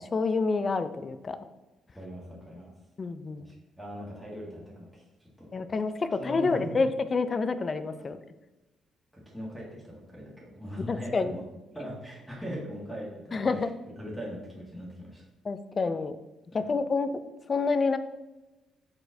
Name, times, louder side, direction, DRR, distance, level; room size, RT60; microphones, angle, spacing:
voice 1, 0.1-1.4 3.0-3.5 5.5-8.2 10.9-11.3 13.3-13.7 15.4-16.2 16.5-17.1 17.5-18.0, left 4 dB, 35° left, 11 dB, 0.3 m, -28 dB
voice 2, 1.9-2.7 3.4-5.5 6.2-6.7 8.0-8.1 9.2-11.4 11.7-13.6 14.0-15.2 16.5-16.7, equal, ahead, -5 dB, 1.4 m, -40 dB
4.5 x 4.2 x 2.6 m, 1.0 s
cardioid pair, 90°, 0 cm